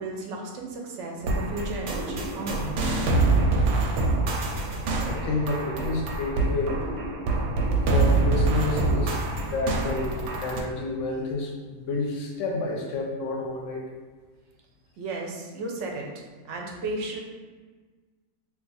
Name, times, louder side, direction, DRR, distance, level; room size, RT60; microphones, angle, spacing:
voice 1, 0.0-2.8 15.0-16.1 16.5-17.2, right 2 dB, 65° right, 0 dB, 0.8 m, -34 dB
sound 1, 1.2-10.6, right 3 dB, 90° right, 1.1 m, -25 dB
voice 2, 4.5-6.8 7.9-13.9, left 3 dB, 70° left, 0 dB, 0.8 m, -30 dB
2.8 x 2.4 x 3.9 m, 1.4 s
omnidirectional pair, 1.5 m